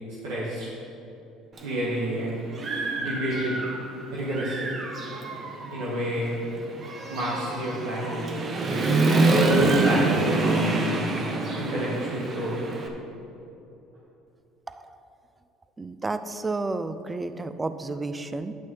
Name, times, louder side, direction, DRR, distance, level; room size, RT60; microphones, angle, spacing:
voice 1, 0.2-0.7 1.6-2.5 3.0-3.6 4.1-4.8 5.7-6.3 7.1-8.3 8.6-9.0 9.7-10.6 10.9-11.3 11.6-12.6, right 1 dB, 80° right, -7 dB, 1.9 m, -30 dB
Human voice / Motorcycle, 1.6-1.7 2.2-3.9 4.3-12.9, right 2 dB, 40° right, 1.4 m, -26 dB
voice 2, 14.7-15.0 15.8-18.5, right 3 dB, 20° right, 11 dB, 0.5 m, -31 dB
10.5 x 6.3 x 5.6 m, 2.9 s
supercardioid pair, 85°, 0 cm